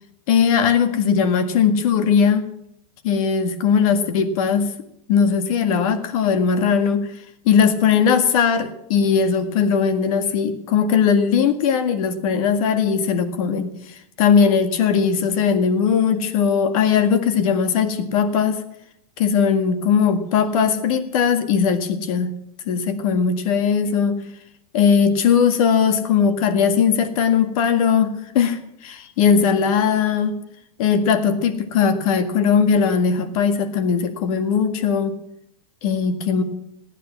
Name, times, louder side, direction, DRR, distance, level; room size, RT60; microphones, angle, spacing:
voice 1, 0.3-2.4 3.0-4.7 5.1-7.1 7.5-18.6 19.2-22.3 22.7-24.2 24.7-30.3 30.8-35.2 35.8-36.4, left 6 dB, 70° left, 9 dB, 1.8 m, -19 dB
18.0 x 10.0 x 7.2 m, 0.74 s
supercardioid pair, 125°, 19 cm